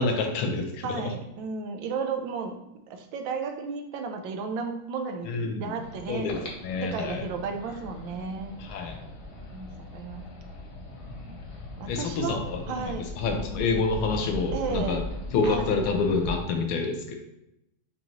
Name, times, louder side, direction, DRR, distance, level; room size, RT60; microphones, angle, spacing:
voice 1, 0.0-0.9 5.3-5.7 6.1-7.3 8.6-9.0 11.9-15.0 15.3-17.1, left 4 dB, 85° left, 4 dB, 1.5 m, -28 dB
voice 2, 0.8-2.5 2.9-6.3 6.8-8.6 9.5-9.7 9.9-10.2 11.8-13.0 14.5-15.0 15.4-15.8, right 5 dB, 75° right, 5 dB, 1.2 m, -33 dB
sound 1, 5.8-16.4, left 2 dB, 65° left, 0.6 m, -39 dB
5.4 x 2.9 x 2.5 m, 0.85 s
omnidirectional pair, 2.2 m